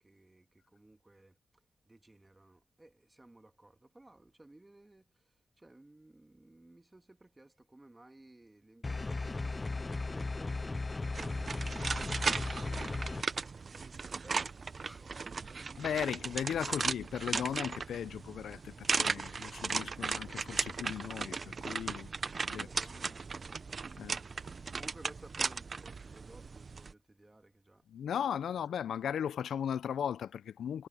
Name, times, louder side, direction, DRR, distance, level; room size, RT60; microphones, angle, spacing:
voice 1, 0.0-11.7 12.1-15.9 16.7-16.8 22.5-27.9, right 2 dB, 15° right, 2.0 m, -58 dB
sound 1, 8.8-13.2, left 3 dB, 25° left, 0.5 m, -36 dB
sound 2, 11.1-26.9, right 4 dB, 45° right, 0.5 m, -37 dB
voice 2, 15.8-22.1 22.5-22.7 24.0-24.2 27.9-30.9, left 8 dB, 80° left, 0.5 m, -37 dB
cardioid pair, 95°, 0 cm